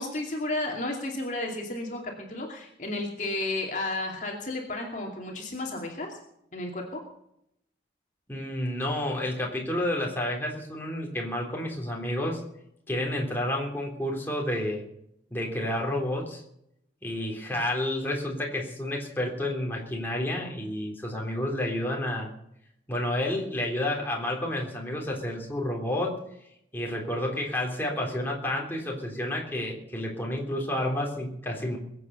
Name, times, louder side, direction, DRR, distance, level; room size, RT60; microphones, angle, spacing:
voice 1, 0.0-6.2 6.5-7.0, left 2 dB, 45° left, 1 dB, 2.6 m, -32 dB
voice 2, 8.3-12.4 12.9-14.8 15.3-16.4 17.0-22.3 22.9-26.2 26.7-31.8, left 1 dB, 10° left, -1 dB, 3.5 m, -30 dB
22.0 x 8.5 x 6.8 m, 0.76 s
head